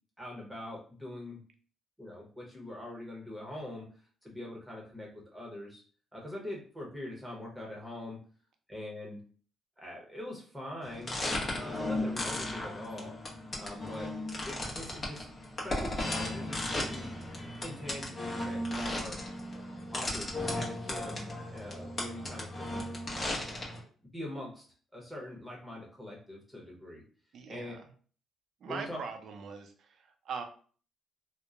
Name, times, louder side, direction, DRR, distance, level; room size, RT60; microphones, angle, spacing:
voice 1, 0.2-1.4 2.0-3.9 4.2-5.8 6.1-8.2 8.7-9.2 9.8-11.2 11.5-13.2 13.5-14.1 14.5-15.2 15.6-17.1 17.6-19.2 19.9-21.3 21.5-22.8 23.4-23.7 24.1-24.6 24.9-27.0 27.5-27.7 28.7-29.0, left 1 dB, 5° right, -2 dB, 0.9 m, -43 dB
sound 1, 10.8-23.8, left 1 dB, 40° left, 0.9 m, -36 dB
voice 2, 27.3-27.9 28.6-30.4, right 5 dB, 65° right, 5 dB, 0.5 m, -41 dB
2.9 x 2.1 x 2.4 m, 0.42 s
cardioid pair, 90°, 0 cm